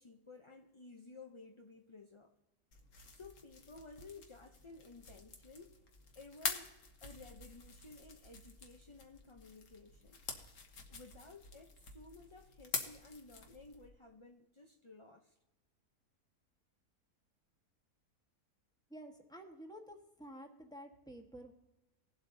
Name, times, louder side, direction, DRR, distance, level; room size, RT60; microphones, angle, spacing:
voice 1, 0.0-2.3 3.1-5.8 6.1-10.2 10.9-15.3, left 3 dB, 35° left, 1 dB, 0.4 m, -55 dB
sound 1, 2.7-13.9, left 4 dB, 55° left, 1.5 m, -47 dB
voice 2, 18.9-21.5, right 1 dB, 5° left, 2 dB, 1.2 m, -51 dB
20.0 x 7.9 x 2.7 m, 1.0 s
omnidirectional pair, 1.6 m